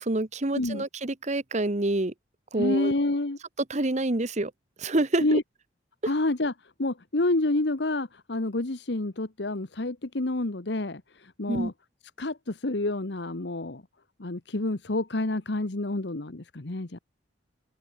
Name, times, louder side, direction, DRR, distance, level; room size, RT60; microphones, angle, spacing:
voice 1, 0.0-2.1 2.5-2.9 3.7-4.5 4.8-5.4 11.5-11.7, right 2 dB, 40° right, 1.2 m, -27 dB
voice 2, 0.5-0.8 2.6-3.4 5.2-5.4 6.0-11.7 12.2-13.8 14.2-17.0, left 2 dB, 65° left, 1.2 m, -28 dB
head